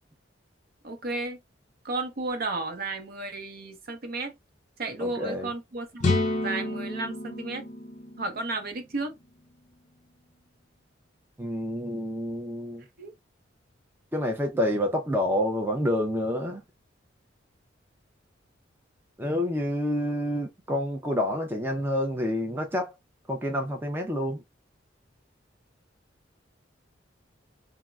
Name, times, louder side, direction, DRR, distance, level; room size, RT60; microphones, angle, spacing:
voice 1, 0.8-1.4 1.8-4.4 4.8-7.6 8.2-9.2 13.0-13.1, right 3 dB, 55° right, 0.7 m, -33 dB
voice 2, 5.0-5.5 11.4-12.9 14.1-16.6 19.2-22.9 23.3-24.4, left 1 dB, 10° right, 0.5 m, -28 dB
sound 1, 6.0-9.8, left 2 dB, 40° left, 0.5 m, -30 dB
3.5 x 2.0 x 2.3 m
head